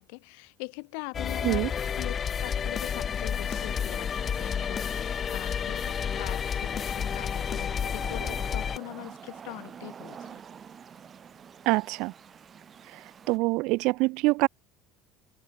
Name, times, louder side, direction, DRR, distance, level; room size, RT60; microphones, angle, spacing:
voice 1, 0.0-10.4, left 40 dB or more, 80° left, 0.9 m, -42 dB
sound 1, 1.1-8.8, left 7 dB, 30° left, 0.5 m, -30 dB
sound 2, 3.3-13.4, right 7 dB, 30° right, 5.6 m, -48 dB
voice 2, 11.7-12.1 13.3-14.5, right 23 dB, 70° right, 0.5 m, -25 dB
cardioid pair, 125°, 0 cm